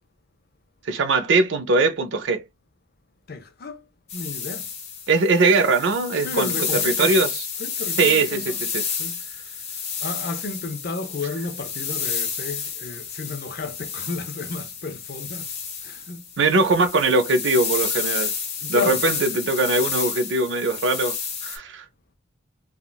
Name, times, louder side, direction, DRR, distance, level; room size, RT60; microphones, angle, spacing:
voice 1, 0.8-2.4 5.1-6.5 6.8-7.3 8.0-8.4 8.7-8.8 16.4-18.3 18.7-21.2 21.4-21.8, right 3 dB, 65° right, 0.5 m, -21 dB
voice 2, 3.3-3.9 4.1-4.7 6.2-7.2 7.6-8.6 9.0-9.5 10.0-15.6 15.8-16.3 18.6-19.0, left 4 dB, 50° left, 0.5 m, -32 dB
sound 1, 4.1-21.6, left 6 dB, 30° left, 0.9 m, -30 dB
3.5 x 2.3 x 2.2 m
head